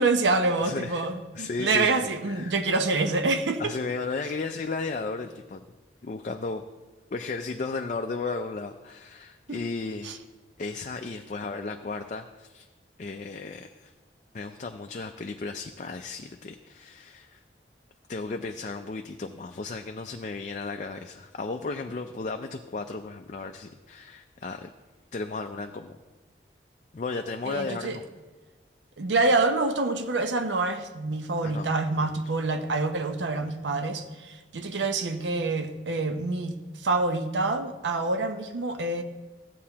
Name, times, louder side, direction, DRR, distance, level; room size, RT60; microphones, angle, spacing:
voice 1, 0.0-3.7 9.5-9.6 10.0-10.1 27.5-28.0 29.0-39.0, right 3 dB, 80° right, 7 dB, 0.7 m, -26 dB
voice 2, 0.6-1.0 1.4-2.6 3.6-5.6 6.0-6.6 7.1-10.2 10.6-12.7 13.0-13.9 14.3-17.4 18.1-24.7 25.1-26.0 26.9-28.0 31.4-31.7 32.0-32.1, left 3 dB, 40° left, 5 dB, 0.4 m, -34 dB
15.0 x 8.3 x 2.9 m, 1.2 s
head